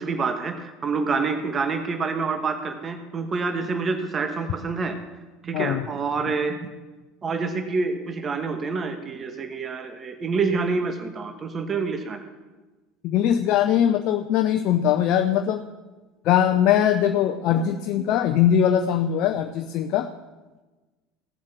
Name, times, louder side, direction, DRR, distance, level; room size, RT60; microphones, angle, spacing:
voice 1, 0.0-5.0 5.4-6.7 7.2-12.2, right 4 dB, 35° right, 7 dB, 1.2 m, -27 dB
voice 2, 5.5-5.9 13.0-15.7 16.2-20.1, left 10 dB, 55° left, 7 dB, 0.6 m, -21 dB
16.0 x 7.4 x 6.0 m, 1.2 s
hypercardioid pair, 70°, 0 cm